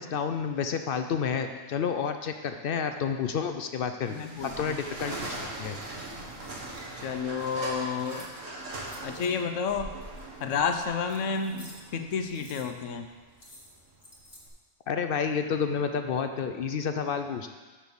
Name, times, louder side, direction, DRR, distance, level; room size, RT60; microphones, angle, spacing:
voice 1, 0.0-4.1 4.4-5.8 14.9-17.5, left 6 dB, 60° left, 7 dB, 0.6 m, -30 dB
sound 1, 4.0-14.5, right 2 dB, 75° right, 1.8 m, -41 dB
voice 2, 4.1-4.8 7.0-8.3 9.0-10.0 10.4-13.1, left 5 dB, 75° left, 7 dB, 1.0 m, -31 dB
sound 2, 5.9-8.3 8.8-9.6 10.2-11.9 12.2-12.7 13.3-14.5, left 1 dB, 45° left, 1.6 m, -53 dB
6.3 x 5.8 x 6.9 m, 1.4 s
omnidirectional pair, 1.3 m